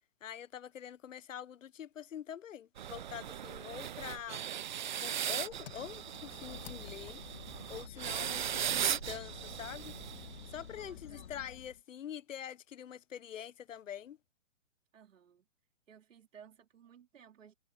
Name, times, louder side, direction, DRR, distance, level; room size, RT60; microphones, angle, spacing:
voice 1, 0.2-4.4 5.0-7.2 7.7-9.9 10.5-14.2, left 9 dB, 65° left, 1.1 m, -45 dB
sound 1, 2.8-10.7, right 10 dB, 35° right, 0.8 m, -38 dB
voice 2, 3.4-4.0 10.8-11.3 14.9-15.5 15.9-17.5, right 8 dB, 65° right, 4.3 m, -58 dB
sound 2, 4.3-11.3, left 13 dB, 15° left, 5.7 m, -65 dB
Engine, 5.5-11.8, left 10 dB, 45° left, 1.5 m, -51 dB
hypercardioid pair, 170°, 41 cm